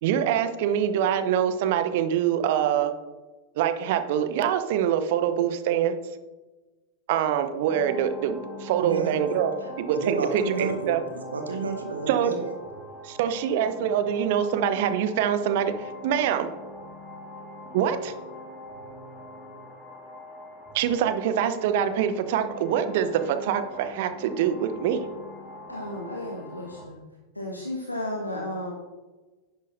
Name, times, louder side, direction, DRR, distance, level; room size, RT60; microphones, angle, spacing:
voice 1, 0.0-2.9 3.6-6.0 7.1-11.0 12.1-12.3 13.0-16.5 17.7-18.1 20.7-25.1, right 9 dB, 50° right, 10 dB, 0.8 m, -25 dB
sound 1, 7.7-26.9, left 2 dB, 5° left, 2.1 m, -43 dB
voice 2, 8.8-9.2 9.9-12.5, right 4 dB, 70° right, 5 dB, 1.3 m, -30 dB
voice 3, 25.7-27.0 27.3-28.7, left 1 dB, 85° left, -1 dB, 1.2 m, -33 dB
10.5 x 10.5 x 2.7 m, 1.2 s
figure-of-eight pair, 90°, 0 cm